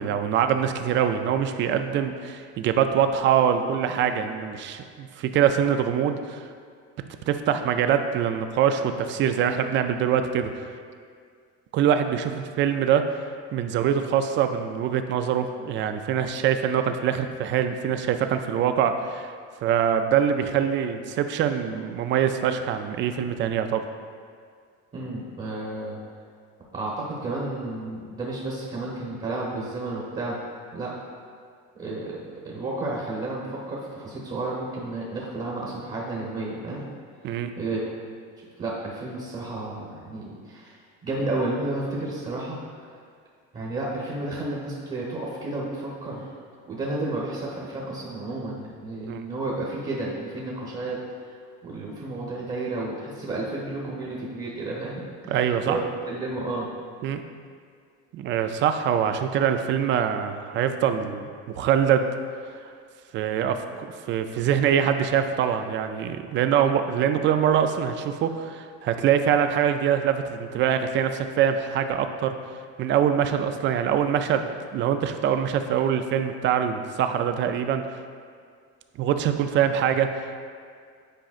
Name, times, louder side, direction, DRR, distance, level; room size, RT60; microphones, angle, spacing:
voice 1, 0.0-6.5 7.3-10.5 11.7-13.2 13.5-19.3 19.6-23.8 37.2-37.5 49.1-49.2 55.3-55.8 57.0-57.2 58.1-62.1 63.1-72.3 72.8-77.8 79.0-80.5, right 8 dB, 40° right, 8 dB, 0.4 m, -24 dB
voice 2, 24.9-26.0 26.7-30.4 30.7-30.9 31.7-36.8 37.6-37.8 38.4-43.0 43.5-46.3 46.7-51.0 51.6-55.8 56.1-56.7, right 2 dB, 25° right, -5 dB, 1.0 m, -32 dB
8.8 x 5.1 x 2.5 m, 2.1 s
cardioid pair, 145°, 31 cm